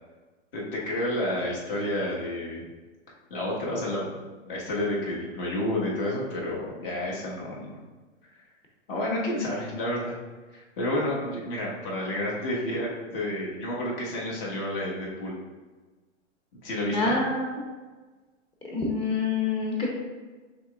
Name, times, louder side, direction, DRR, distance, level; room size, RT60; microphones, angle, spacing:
voice 1, 0.5-2.6 3.3-4.2 4.4-7.8 8.9-10.1 10.5-15.3 16.6-17.2, left 1 dB, 45° left, -4 dB, 1.5 m, -30 dB
voice 2, 16.9-17.6 18.7-19.9, left 3 dB, 15° left, -2 dB, 0.7 m, -27 dB
5.9 x 3.5 x 2.4 m, 1.3 s
hypercardioid pair, 140°, 37 cm